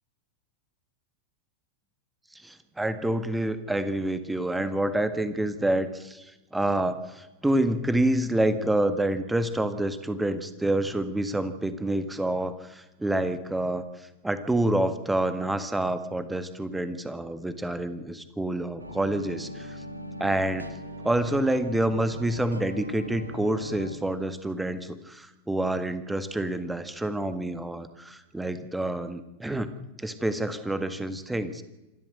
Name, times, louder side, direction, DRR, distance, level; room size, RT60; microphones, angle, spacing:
voice 1, 2.4-13.8 14.2-19.8 20.2-20.6 21.0-29.7 30.0-31.6, right 1 dB, 5° right, 12 dB, 1.6 m, -28 dB
sound 1, 18.8-24.0, equal, 85° right, 1.9 m, -40 dB
26.5 x 12.5 x 7.8 m, 1.1 s
figure-of-eight pair, 90°, 0 cm